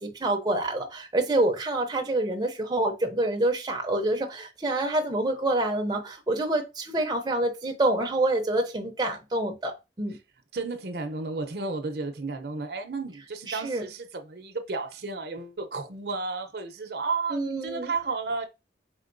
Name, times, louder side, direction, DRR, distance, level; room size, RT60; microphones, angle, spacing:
voice 1, 0.0-10.2 13.5-13.8 17.3-17.9, right 2 dB, 20° right, 0.6 m, -27 dB
voice 2, 10.5-18.5, right 3 dB, 60° right, 0.6 m, -32 dB
4.4 x 3.6 x 2.5 m
head